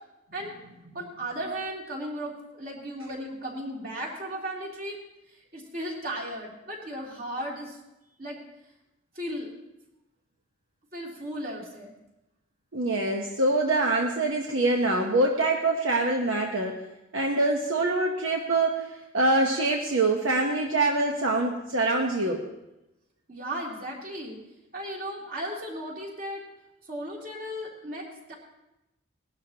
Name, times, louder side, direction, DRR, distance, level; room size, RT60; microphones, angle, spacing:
voice 1, 0.9-5.0 5.3-7.8 8.2-8.4 9.1-9.5 10.9-11.9 23.3-24.4 24.7-26.4 26.9-28.3, right 1 dB, 45° right, -3 dB, 3.1 m, -35 dB
voice 2, 12.7-16.8 17.1-18.9 19.1-22.4, right 2 dB, 75° right, 1 dB, 1.1 m, -24 dB
19.5 x 12.0 x 2.9 m, 0.93 s
head